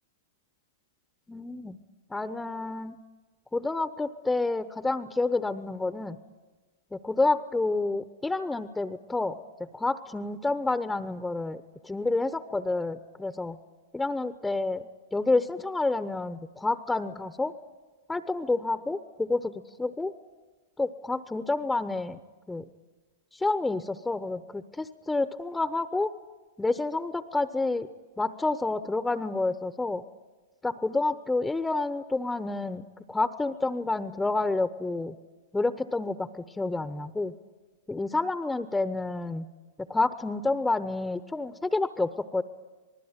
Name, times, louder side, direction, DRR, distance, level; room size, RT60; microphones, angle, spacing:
voice 1, 1.3-1.8 2.1-2.9 3.5-6.2 6.9-13.6 13.9-17.5 18.1-19.5 19.8-20.1 20.8-22.2 22.5-22.6 23.3-26.1 26.6-27.9 28.2-30.0 30.6-35.1 35.5-37.3 37.9-39.5 39.9-42.4, left 3 dB, 10° left, 10 dB, 1.0 m, -29 dB
27.5 x 20.0 x 9.0 m, 1.2 s
hypercardioid pair, 105°, 0 cm